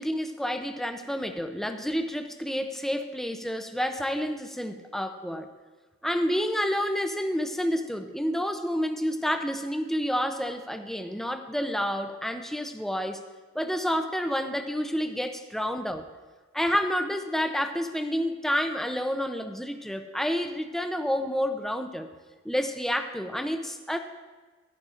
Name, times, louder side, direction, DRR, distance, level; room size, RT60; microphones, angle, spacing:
voice 1, 0.0-5.5 6.0-13.2 13.5-16.0 16.5-22.1 22.4-24.0, equal, ahead, 6 dB, 0.5 m, -29 dB
14.5 x 11.5 x 2.5 m, 1.4 s
head